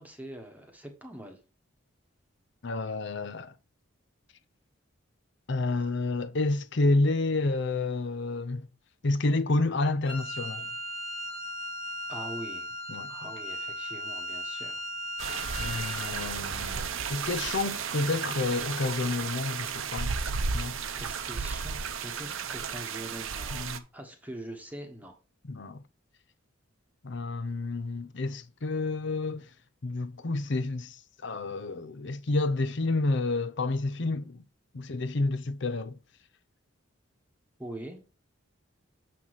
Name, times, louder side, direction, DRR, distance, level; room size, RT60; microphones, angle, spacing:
voice 1, 0.0-1.4 12.1-12.8 13.1-14.8 21.0-23.7 23.9-25.1 37.6-38.0, right 1 dB, 10° right, 1.2 m, -43 dB
voice 2, 2.6-3.5 5.5-8.7 9.0-10.7 12.9-13.1 15.6-20.1 20.5-20.7 23.5-23.8 25.5-25.8 27.0-29.5 29.8-34.4 34.7-35.9, left 2 dB, 60° left, 0.7 m, -29 dB
Wind instrument woodwind instrument, 10.0-16.4, equal, 25° left, 1.6 m, -37 dB
sound 1, 15.2-23.8, right 6 dB, 75° right, 0.8 m, -33 dB
7.4 x 6.0 x 3.0 m
head